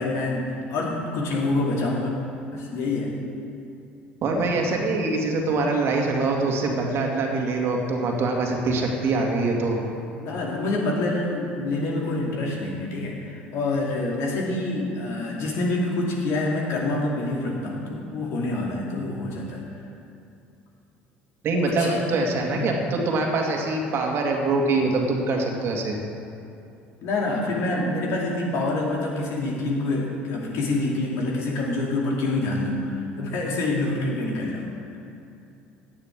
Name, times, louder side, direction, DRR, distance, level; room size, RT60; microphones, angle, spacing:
voice 1, 0.0-2.1 2.5-3.2 10.1-19.6 21.6-22.1 22.6-22.8 27.0-34.7, left 2 dB, 55° left, -2 dB, 2.6 m, -26 dB
voice 2, 4.2-9.8 21.4-26.0, right 3 dB, 45° right, 0 dB, 2.2 m, -24 dB
17.0 x 10.5 x 3.7 m, 2.6 s
figure-of-eight pair, 60°, 6 cm